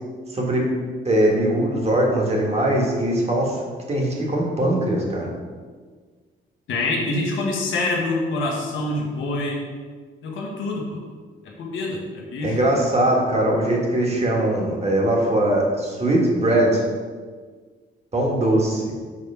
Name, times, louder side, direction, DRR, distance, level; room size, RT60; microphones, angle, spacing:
voice 1, 0.3-0.7 1.0-3.6 3.9-5.3 12.4-16.8 18.1-18.9, right 1 dB, 30° right, -1 dB, 1.6 m, -21 dB
voice 2, 6.7-9.6 10.2-11.0 11.4-12.6, left 2 dB, 80° left, -1 dB, 1.2 m, -26 dB
5.5 x 3.7 x 5.5 m, 1.5 s
cardioid pair, 90°, 20 cm